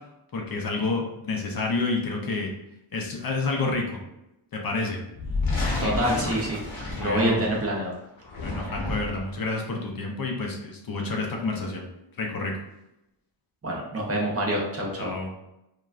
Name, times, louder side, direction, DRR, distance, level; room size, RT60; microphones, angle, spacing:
voice 1, 0.3-2.5 2.9-4.0 4.5-5.0 7.0-7.4 8.4-11.9 12.2-12.5 15.0-15.3, left 3 dB, 50° left, 1 dB, 0.5 m, -29 dB
sound 1, 5.2-7.7 8.2-9.3, left 2 dB, 75° left, 0.9 m, -30 dB
voice 2, 5.8-6.6 7.0-7.9 13.6-15.1, right 1 dB, 30° right, -2 dB, 0.5 m, -26 dB
3.1 x 2.2 x 2.3 m, 0.89 s
wide cardioid pair, 145°, 46 cm